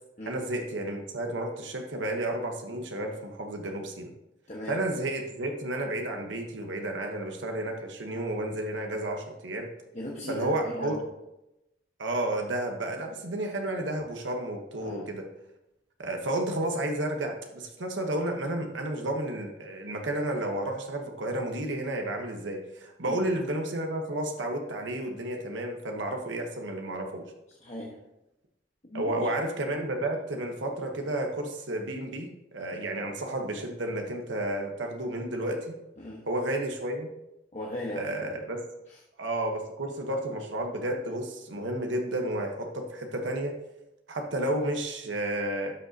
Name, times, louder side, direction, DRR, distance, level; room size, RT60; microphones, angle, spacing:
voice 1, 0.3-4.1 4.7-9.7 10.3-11.0 12.0-15.2 16.0-27.2 28.9-35.7 36.3-37.1 38.0-38.6 39.2-43.5 44.1-45.7, right 1 dB, 90° right, 3 dB, 1.1 m, -31 dB
voice 2, 9.9-11.0 14.8-15.1 23.1-23.2 27.6-28.0 28.9-29.3 36.0-36.2 37.5-38.1, equal, 40° left, -4 dB, 1.2 m, -37 dB
12.0 x 6.3 x 2.8 m, 0.92 s
head